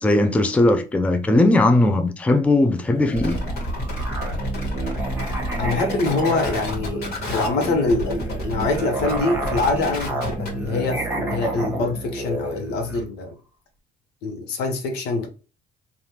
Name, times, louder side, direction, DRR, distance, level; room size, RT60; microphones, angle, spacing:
voice 1, 0.0-3.4, left 2 dB, 10° left, 0.4 m, -18 dB
Musical instrument, 2.9-13.1, right 3 dB, 10° right, 1.0 m, -31 dB
sound 1, 3.2-10.7, left 1 dB, 65° left, 1.4 m, -30 dB
voice 2, 5.6-13.3 14.2-15.3, left 3 dB, 85° left, 0.9 m, -24 dB
3.3 x 2.4 x 2.7 m
cardioid pair, 110°, 17 cm